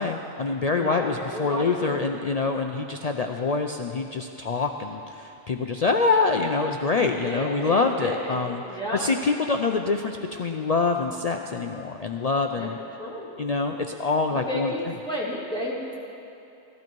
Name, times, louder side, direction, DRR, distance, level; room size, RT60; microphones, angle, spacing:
voice 1, 0.0-8.6 8.9-12.8 13.4-14.7, left 4 dB, 50° left, 4 dB, 0.4 m, -25 dB
voice 2, 0.7-2.1 7.1-9.1 12.5-12.7 13.0-13.3 14.3-16.0, equal, 5° left, -6 dB, 2.4 m, -33 dB
15.5 x 12.0 x 4.6 m, 2.7 s
omnidirectional pair, 1.2 m